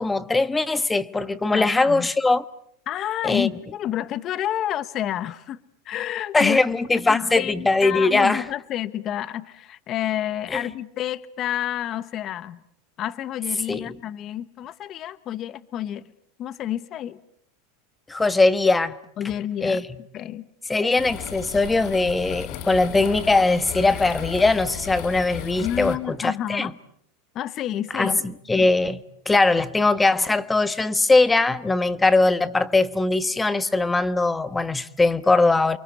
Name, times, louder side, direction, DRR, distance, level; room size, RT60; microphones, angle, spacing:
voice 1, 0.0-2.4 3.2-3.5 6.3-8.4 10.5-10.6 13.7-14.0 18.1-19.0 19.6-19.8 20.7-26.7 27.9-28.1 28.5-29.0 29.2-35.8, left 3 dB, 10° left, 1.2 m, -20 dB
voice 2, 1.5-2.1 2.9-6.6 7.1-12.6 13.0-16.1 16.4-17.2 19.2-19.8 20.1-20.5 25.6-26.7 27.3-28.2, left 11 dB, 40° left, 1.1 m, -29 dB
sound 1, 21.0-26.0, left 10 dB, 55° left, 2.6 m, -35 dB
29.5 x 24.0 x 8.4 m
supercardioid pair, 125°, 0 cm